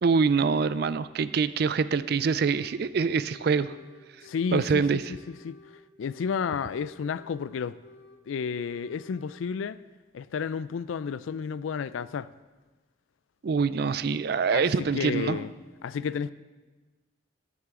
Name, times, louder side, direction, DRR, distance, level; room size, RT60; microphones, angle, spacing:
voice 1, 0.0-3.7 4.5-5.0 13.4-15.4, right 5 dB, 55° right, 0.4 m, -25 dB
sound 1, 2.4-2.8 3.1-4.6 4.9-6.4 6.7-8.2 8.5-9.4, left 4 dB, 55° left, 0.8 m, -53 dB
voice 2, 4.2-5.6 6.0-7.8 8.3-9.8 10.1-12.3 14.5-15.5 15.8-16.3, left 6 dB, 90° left, 0.4 m, -31 dB
13.0 x 9.8 x 3.7 m
head